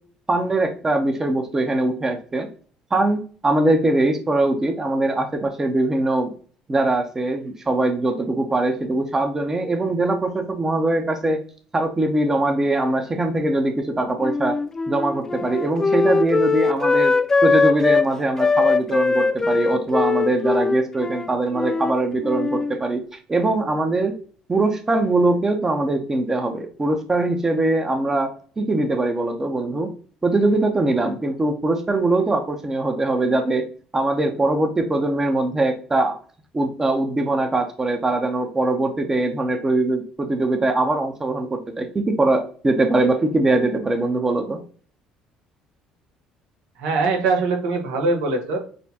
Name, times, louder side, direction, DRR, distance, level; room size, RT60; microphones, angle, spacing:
voice 1, 0.3-2.5 2.9-6.3 6.7-11.4 11.7-14.6 14.9-17.2 17.4-24.1 24.5-29.9 30.2-33.7 33.9-36.2 36.5-44.6, right 2 dB, 20° right, 6 dB, 0.8 m, -22 dB
Wind instrument woodwind instrument, 14.2-18.1 18.4-21.9 22.2-22.8, left 4 dB, 20° left, 0.3 m, -21 dB
voice 2, 46.8-48.6, right 3 dB, 90° right, 2 dB, 1.4 m, -22 dB
6.5 x 2.2 x 2.9 m, 0.43 s
supercardioid pair, 85°, 2 cm